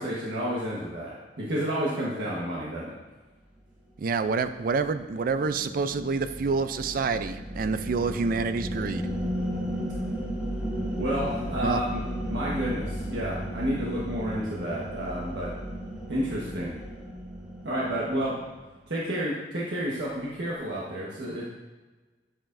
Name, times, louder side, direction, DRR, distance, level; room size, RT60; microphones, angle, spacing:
voice 1, 0.0-3.0 11.0-15.5 16.1-16.7 17.6-18.4 18.9-21.5, equal, 80° right, -6 dB, 1.3 m, -30 dB
voice 2, 4.0-9.1 11.6-11.8, right 4 dB, 55° right, 11 dB, 0.4 m, -27 dB
sound 1, 4.5-18.6, equal, 5° right, 0.9 m, -35 dB
8.9 x 6.8 x 2.6 m, 1.2 s
head